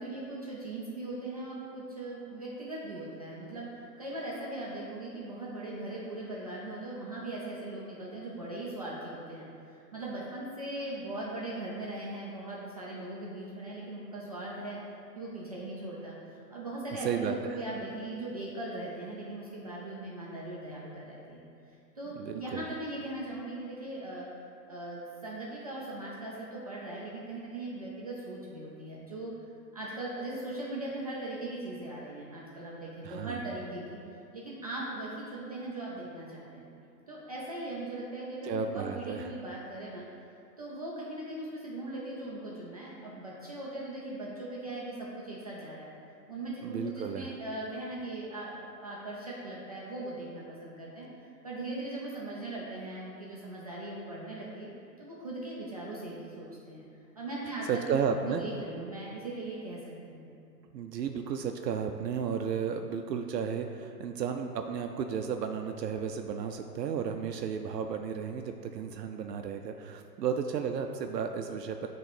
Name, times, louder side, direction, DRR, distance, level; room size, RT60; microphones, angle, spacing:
voice 1, 0.0-14.8 15.1-21.4 22.0-24.3 24.7-29.3 29.7-34.0 34.3-36.7 37.1-40.0 40.6-45.9 46.3-51.1 51.4-54.7 55.0-56.9 57.2-58.0 58.3-59.8 60.1-60.3, right 2 dB, 25° right, -6 dB, 0.3 m, -39 dB
voice 2, 17.0-17.6 22.2-22.6 33.0-33.4 38.4-39.3 46.6-47.3 57.7-58.4 60.7-71.9, right 7 dB, 75° right, 5 dB, 0.5 m, -33 dB
7.7 x 3.2 x 4.4 m, 2.6 s
hypercardioid pair, 120°, 49 cm